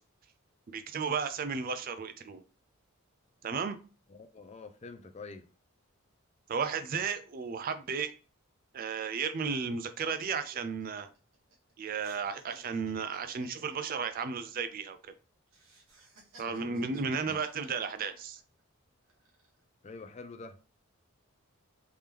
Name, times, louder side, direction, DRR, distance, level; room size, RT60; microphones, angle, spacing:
voice 1, 0.7-2.4 3.4-3.8 6.5-8.1 8.7-11.1 11.8-15.1 16.4-18.4, right 5 dB, 40° right, 0.4 m, -34 dB
voice 2, 4.1-5.5 16.5-17.4 19.8-20.6, left 3 dB, 30° left, 0.4 m, -47 dB
sound 1, 10.6-11.7 12.0-15.1 15.5-18.6 19.0-19.6, right 2 dB, 70° right, 1.3 m, -59 dB
3.5 x 2.9 x 3.3 m
head